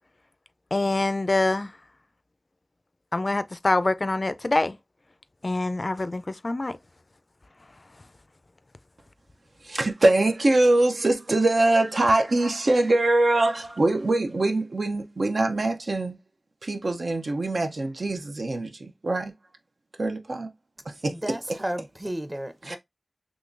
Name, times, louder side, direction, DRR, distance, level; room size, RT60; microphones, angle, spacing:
voice 1, 0.7-1.7 3.1-4.8 5.4-6.8, left 2 dB, 55° left, 0.3 m, -25 dB
voice 2, 9.6-16.2 16.6-19.3 20.0-20.5 20.8-21.6 22.6-22.8, right 2 dB, 80° right, 0.6 m, -23 dB
voice 3, 21.1-22.8, right 1 dB, 25° right, 0.7 m, -33 dB
3.6 x 3.0 x 2.5 m
wide cardioid pair, 50°, 0 cm